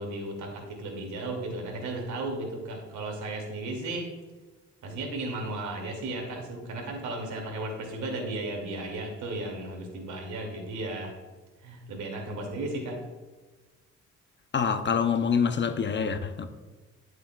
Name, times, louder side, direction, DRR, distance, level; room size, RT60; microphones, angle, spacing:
voice 1, 0.0-4.1 4.8-11.1 11.6-13.0, right 2 dB, 75° right, 2.6 m, -35 dB
voice 2, 14.5-16.5, left 6 dB, 40° left, 0.8 m, -26 dB
11.5 x 7.8 x 2.4 m
cardioid pair, 90°, 30 cm